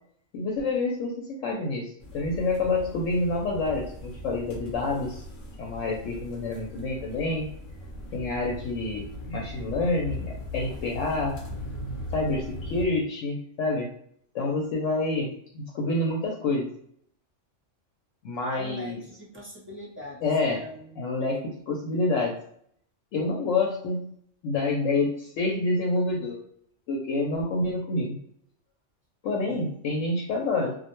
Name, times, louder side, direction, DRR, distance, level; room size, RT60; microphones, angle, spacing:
voice 1, 0.3-5.2 5.6-7.5 8.1-11.4 12.1-13.9 14.3-16.7 18.2-19.0 20.2-20.6 21.0-22.4 23.1-24.1 24.4-26.4 26.9-28.2 29.2-30.7, left 2 dB, 80° left, -1 dB, 0.9 m, -28 dB
sound 1, 2.0-12.9, left 1 dB, 50° left, 0.7 m, -39 dB
voice 2, 18.5-21.1 29.4-29.7, equal, 15° right, -4 dB, 0.5 m, -42 dB
2.4 x 2.1 x 2.9 m, 0.66 s
omnidirectional pair, 1.3 m